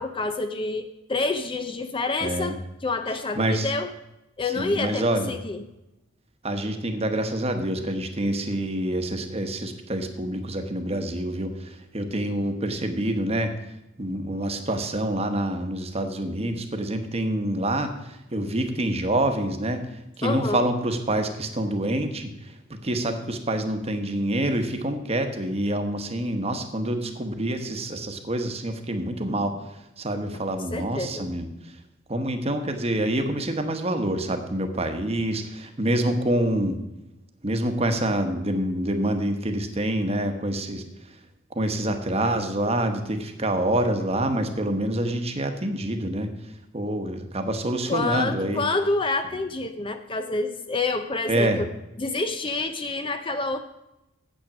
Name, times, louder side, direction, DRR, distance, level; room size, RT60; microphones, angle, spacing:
voice 1, 0.0-3.9 4.4-5.6 20.2-20.6 30.7-31.3 47.9-51.7 52.0-53.6, left 3 dB, 25° left, 8 dB, 0.5 m, -28 dB
voice 2, 2.2-2.5 3.4-3.7 4.6-5.3 6.4-13.5 14.0-19.8 20.2-22.5 22.8-29.6 30.0-31.5 32.1-36.8 37.4-40.8 41.5-46.3 46.7-48.6 51.3-51.6, right 1 dB, 30° right, 6 dB, 1.1 m, -26 dB
9.0 x 8.1 x 6.0 m, 0.92 s
head